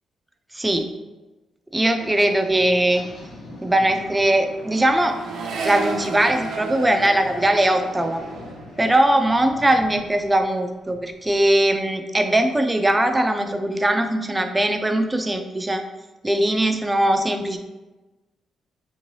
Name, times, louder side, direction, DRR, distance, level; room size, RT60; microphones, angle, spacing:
voice 1, 0.5-0.9 1.7-3.0 3.6-5.2 5.6-8.2 8.8-15.8 16.2-17.6, right 1 dB, 10° right, 6 dB, 0.3 m, -20 dB
sound 1, 2.0-10.0, left 2 dB, 60° left, 0.7 m, -42 dB
Accelerating revving vroom, 2.4-2.7 2.9-10.5 10.8-11.4, right 4 dB, 75° right, 0.5 m, -35 dB
3.7 x 2.6 x 3.0 m, 1.1 s
cardioid pair, 120°, 0 cm